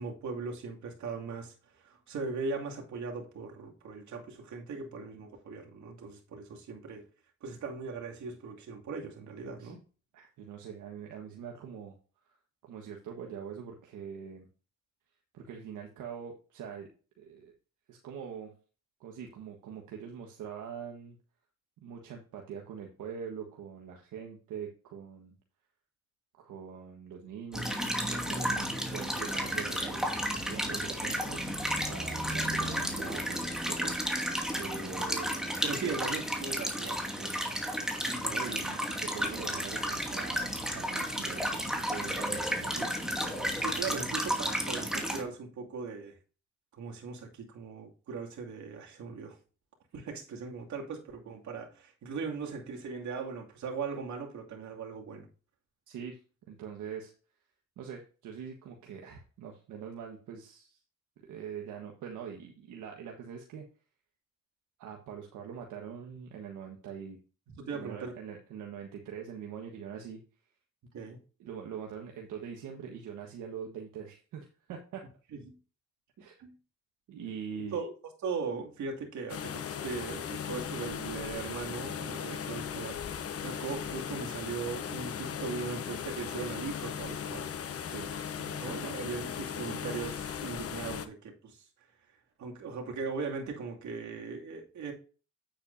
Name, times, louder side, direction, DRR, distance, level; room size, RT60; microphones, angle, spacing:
voice 1, 0.0-7.1 7.4-9.8 35.6-37.4 38.1-38.6 41.0-41.1 43.6-46.2 46.7-49.4 49.9-55.3 67.5-68.2 70.9-71.2 75.4-75.6 76.4-76.6 77.7-77.9 78.2-87.5 88.6-91.7 92.4-94.9, right 5 dB, 70° right, 2.6 m, -39 dB
voice 2, 10.1-12.0 12.3-12.4 12.6-14.5 15.3-16.9 17.2-17.5 17.9-18.5 19.0-21.2 21.8-25.4 26.4-27.7 28.0-34.0 34.6-35.4 35.8-36.0 38.2-43.6 55.9-56.2 56.5-57.1 57.8-60.8 61.2-63.6 64.8-67.2 67.7-70.2 71.4-75.0 76.2-76.4 77.1-77.8 87.8-88.1 88.4-89.1, right 7 dB, 85° right, 1.5 m, -43 dB
sound 1, 27.5-45.2, equal, ahead, 2.4 m, -32 dB
sound 2, 79.3-91.1, left 8 dB, 50° left, 1.0 m, -38 dB
8.9 x 7.8 x 2.7 m
cardioid pair, 90°, 30 cm